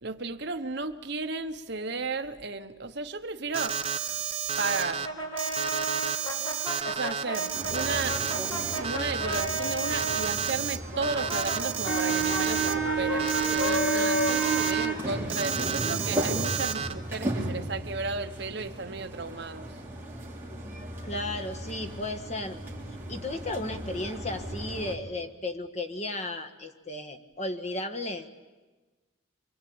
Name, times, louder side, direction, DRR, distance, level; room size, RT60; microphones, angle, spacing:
voice 1, 0.0-3.8 4.6-5.1 6.9-8.2 8.7-19.8, right 3 dB, 55° right, 8 dB, 1.1 m, -34 dB
Alarm, 3.5-5.1 5.4-10.8 11.0-12.7 13.2-14.9 15.3-16.9, right 8 dB, 30° right, 1.1 m, -31 dB
Brass instrument, 4.6-10.3 10.9-15.7, left 1 dB, 80° left, 6.8 m, -34 dB
sound 1, 7.5-24.9, right 3 dB, 10° right, 3.5 m, -33 dB
voice 2, 21.0-22.6 23.1-28.3, left 2 dB, 35° left, 5 dB, 1.6 m, -34 dB
25.5 x 24.5 x 8.7 m, 1.2 s
head